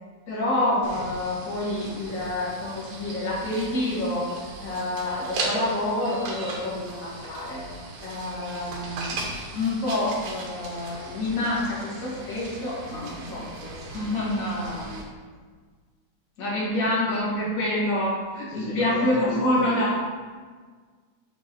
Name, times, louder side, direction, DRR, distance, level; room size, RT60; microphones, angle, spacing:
voice 1, 0.3-4.3 4.6-7.6 8.0-9.1 9.5-15.0 16.4-20.0, left 1 dB, 30° left, -8 dB, 2.0 m, -27 dB
sound 1, 0.8-15.0, right 2 dB, 80° right, 2.3 m, -37 dB
voice 2, 18.5-19.8, left 1 dB, 90° left, -4 dB, 3.0 m, -36 dB
7.0 x 3.6 x 4.7 m, 1.5 s
omnidirectional pair, 3.5 m